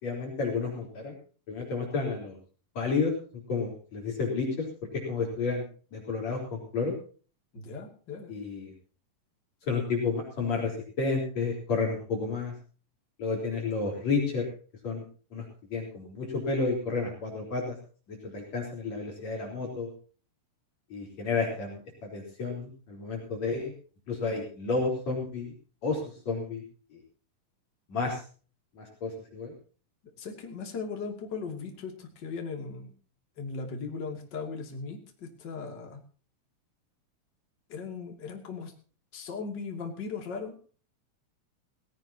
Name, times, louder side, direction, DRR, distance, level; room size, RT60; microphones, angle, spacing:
voice 1, 0.0-1.2 1.5-2.4 2.8-3.1 3.5-4.7 5.1-5.6 5.9-6.9 8.3-8.7 9.6-12.5 13.2-14.5 14.8-15.0 15.3-15.4 15.7-17.8 18.1-19.9 20.9-23.7 24.1-25.5 25.8-26.0 26.3-26.6 27.9-28.2 28.8-29.5, left 4 dB, 50° left, -1 dB, 5.2 m, -31 dB
voice 2, 7.5-8.3 30.2-32.9 33.4-36.0 37.7-38.7 39.1-40.6, left 4 dB, 35° left, 3 dB, 3.0 m, -38 dB
18.5 x 17.0 x 2.9 m, 0.39 s
omnidirectional pair, 4.0 m